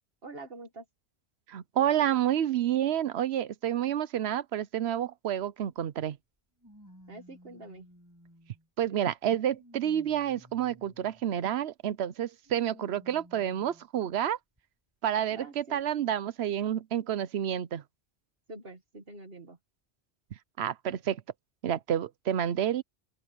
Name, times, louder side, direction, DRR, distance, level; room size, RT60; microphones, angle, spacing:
voice 1, 0.2-0.9 7.1-7.9 15.3-15.8 18.5-19.6, right 2 dB, 60° right, 2.1 m, -46 dB
voice 2, 1.5-6.2 8.8-14.4 15.0-17.8 20.6-21.2 21.6-22.8, right 10 dB, 80° right, 1.0 m, -29 dB
sound 1, 5.4-5.5 6.6-8.7 9.2-11.3 12.4-13.9 14.6-14.7 15.8-15.9, equal, 15° right, 5.5 m, -56 dB
open air
omnidirectional pair, 1.1 m